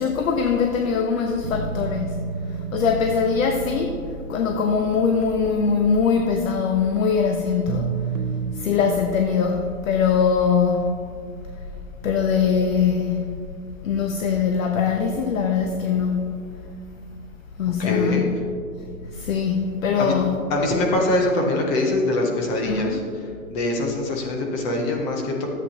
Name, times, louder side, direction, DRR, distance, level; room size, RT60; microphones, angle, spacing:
voice 1, 0.0-8.2 8.5-11.0 11.5-11.6 12.0-13.4 13.8-16.3 17.6-18.2 18.8-18.9 19.1-20.4 22.6-23.1, left 6 dB, 65° left, 4 dB, 1.0 m, -22 dB
sound 1, 1.4-6.5 7.7-8.5, right 7 dB, 60° right, 0.8 m, -31 dB
voice 2, 17.8-18.2 20.0-20.1 20.5-23.0 23.5-25.5, left 2 dB, 10° left, 1 dB, 0.5 m, -23 dB
13.5 x 8.1 x 2.8 m, 2.2 s
hypercardioid pair, 155°, 43 cm